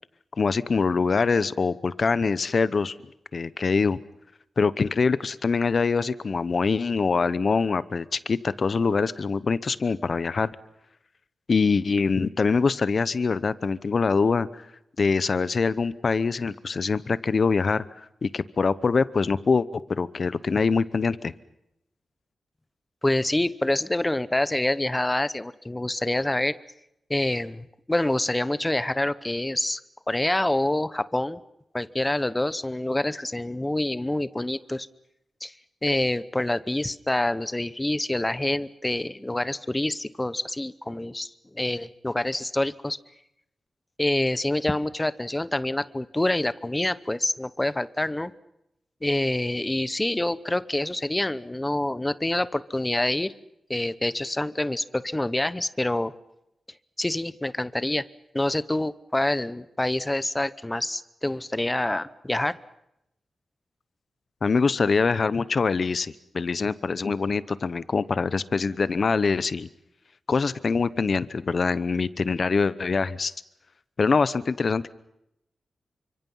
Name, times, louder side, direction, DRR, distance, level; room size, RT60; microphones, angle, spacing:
voice 1, 0.4-3.0 3.3-4.0 4.6-10.5 11.5-14.6 15.0-21.3 64.4-69.7 70.3-73.3 74.0-74.9, left 4 dB, 40° left, 17 dB, 0.9 m, -24 dB
voice 2, 23.0-26.6 27.1-29.8 30.1-31.4 31.7-34.9 35.4-35.5 35.8-43.0 44.0-48.3 49.0-53.3 53.7-56.1 57.0-58.0 58.3-62.6, left 1 dB, 10° left, 16 dB, 0.8 m, -26 dB
29.0 x 25.5 x 5.6 m, 0.82 s
wide cardioid pair, 175°, 0 cm